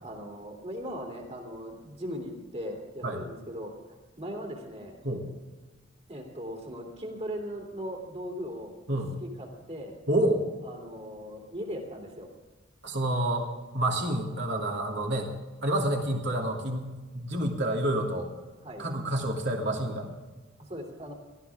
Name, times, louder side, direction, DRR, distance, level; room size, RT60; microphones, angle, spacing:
voice 1, 0.0-4.9 6.1-8.7 9.2-10.0 10.6-12.3 18.6-18.9 20.6-21.1, equal, 35° right, 1 dB, 3.1 m, -39 dB
voice 2, 10.1-10.4 12.8-13.5 13.7-15.3 15.6-18.3 18.8-20.1, right 1 dB, 60° right, 0 dB, 2.9 m, -28 dB
17.5 x 13.5 x 3.6 m, 1.3 s
head